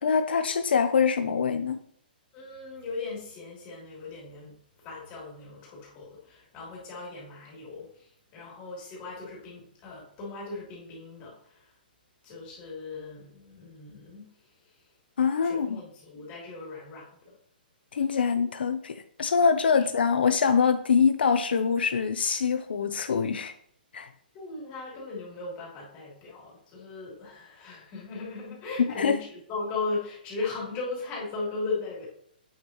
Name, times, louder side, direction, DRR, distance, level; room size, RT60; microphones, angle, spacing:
voice 1, 0.0-1.8 15.2-15.8 17.9-23.5 23.9-24.1 28.8-29.2, left 6 dB, 80° left, 8 dB, 0.6 m, -24 dB
voice 2, 2.3-4.5 4.8-8.0 8.3-11.7 12.2-14.2 15.4-17.3 19.8-19.9 24.3-32.1, left 3 dB, 25° left, -4 dB, 3.3 m, -37 dB
8.5 x 6.6 x 3.1 m, 0.66 s
hypercardioid pair, 160°, 5 cm